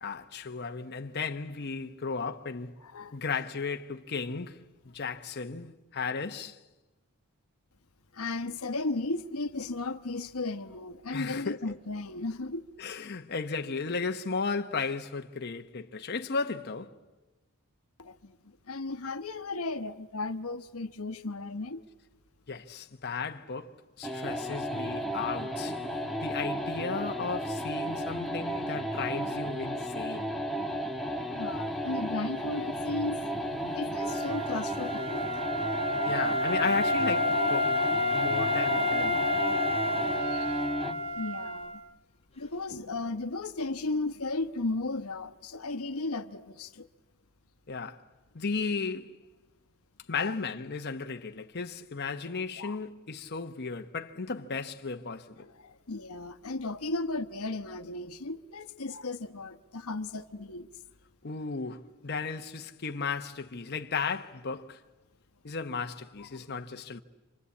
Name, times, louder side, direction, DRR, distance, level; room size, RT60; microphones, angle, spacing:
voice 1, 0.0-2.7 3.1-4.6 4.9-6.6 11.1-11.8 12.8-17.0 22.5-25.8 26.2-30.3 36.0-37.8 38.1-39.2 47.7-48.0 48.3-49.1 50.1-55.5 61.2-64.8 65.4-67.0, left 4 dB, 50° left, 0.9 m, -35 dB
voice 2, 2.8-3.2 8.1-12.6 18.0-18.4 18.7-21.8 31.3-33.2 33.7-35.4 40.2-40.5 41.2-41.8 42.4-46.9 50.1-50.3 52.6-52.8 55.4-60.7 66.2-66.3, left 3 dB, 75° left, 1.1 m, -35 dB
sound 1, 24.0-41.0, equal, ahead, 2.0 m, -34 dB
Wind instrument woodwind instrument, 34.0-41.8, left 1 dB, 25° left, 1.7 m, -29 dB
27.5 x 25.5 x 8.4 m
head